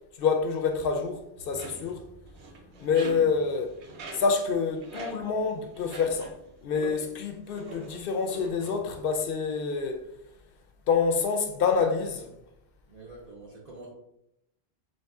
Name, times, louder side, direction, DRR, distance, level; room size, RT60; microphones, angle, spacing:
voice 1, 0.2-1.2 1.5-2.0 2.8-3.7 4.1-6.3 6.6-10.0 10.9-12.3, left 5 dB, 65° left, 0.7 m, -27 dB
sound 1, 1.4-6.5 6.8-7.1 7.5-8.8, right 3 dB, 90° right, 1.0 m, -43 dB
voice 2, 12.9-13.9, right 2 dB, 45° right, 0.7 m, -47 dB
3.8 x 2.6 x 3.4 m
omnidirectional pair, 1.1 m